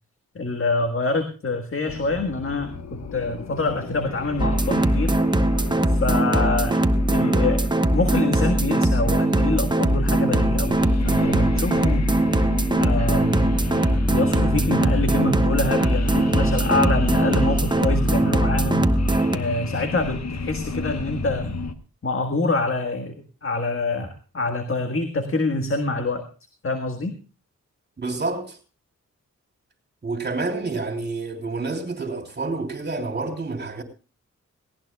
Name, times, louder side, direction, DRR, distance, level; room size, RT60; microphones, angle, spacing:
voice 1, 0.4-5.2 5.9-6.8 7.1-12.1 12.8-13.6 14.1-18.9 19.3-21.6 22.0-26.2 26.6-27.2, left 2 dB, 45° left, 1.7 m, -26 dB
sound 1, 1.9-21.7, left 3 dB, 60° left, 1.3 m, -33 dB
sound 2, 4.4-19.4, right 1 dB, 15° right, 1.0 m, -21 dB
voice 2, 28.0-28.6 30.0-33.8, right 3 dB, 35° right, 3.5 m, -28 dB
18.5 x 18.0 x 2.3 m
cardioid pair, 75°, 30 cm